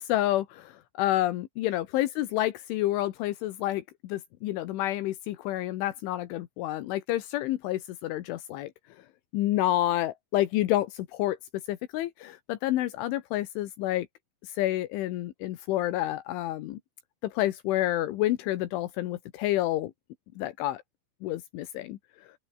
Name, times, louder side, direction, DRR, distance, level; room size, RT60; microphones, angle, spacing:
voice 1, 0.0-8.7 9.3-11.4 11.7-14.1 14.4-16.8 17.2-19.9 20.4-20.8 21.2-22.0, left 15 dB, 80° left, 3.7 m, -29 dB
open air
omnidirectional pair, 5.7 m